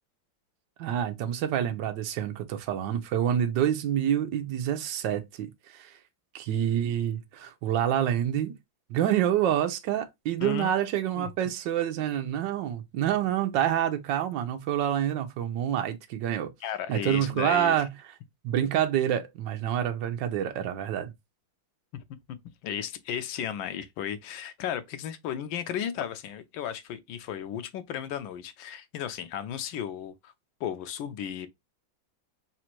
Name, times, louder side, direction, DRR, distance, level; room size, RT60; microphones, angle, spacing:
voice 1, 0.8-5.9 6.3-8.5 8.9-16.5 16.9-17.9 18.4-21.1, right 10 dB, 70° right, 1.4 m, -27 dB
voice 2, 10.4-10.7 11.2-11.3 16.6-17.8 21.9-22.0 22.6-30.3 30.6-31.5, left 9 dB, 85° left, 1.4 m, -34 dB
4.2 x 2.5 x 4.4 m
omnidirectional pair, 2.1 m